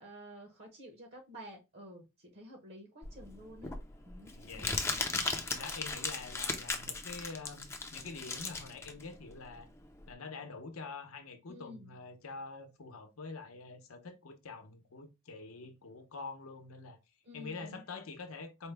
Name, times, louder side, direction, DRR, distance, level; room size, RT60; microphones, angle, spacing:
voice 1, 0.0-3.7 4.1-5.0 11.5-12.0 17.2-17.8, equal, 55° right, 0.9 m, -51 dB
Crumpling crinkling, 3.0-10.1, left 3 dB, 15° left, 0.4 m, -37 dB
voice 2, 4.3-4.7 5.5-9.7 10.1-17.0 17.3-18.7, left 4 dB, 75° left, 0.7 m, -46 dB
4.4 x 2.1 x 3.3 m
head